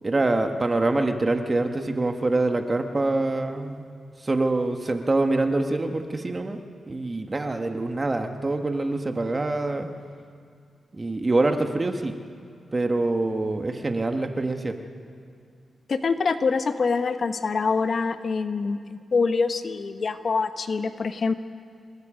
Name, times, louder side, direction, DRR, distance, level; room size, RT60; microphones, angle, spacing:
voice 1, 0.0-3.8 4.2-6.6 6.9-9.9 10.9-12.1 12.7-14.8, right 2 dB, 30° right, 5 dB, 1.6 m, -25 dB
voice 2, 15.9-21.4, left 4 dB, 55° left, 9 dB, 1.0 m, -25 dB
27.5 x 20.5 x 5.2 m, 2.4 s
cardioid pair, 80°, 0 cm